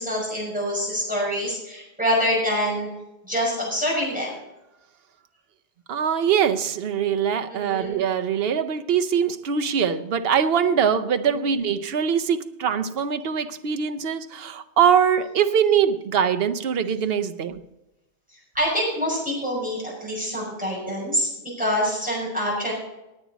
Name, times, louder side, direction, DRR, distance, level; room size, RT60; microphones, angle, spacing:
voice 1, 0.0-2.9 3.2-4.3 7.5-8.0 11.3-11.4 18.3-21.3 21.6-22.7, equal, 5° right, 5.9 m, -26 dB
voice 2, 5.9-17.6, right 7 dB, 65° right, 0.9 m, -22 dB
18.5 x 9.2 x 4.1 m
omnidirectional pair, 1.1 m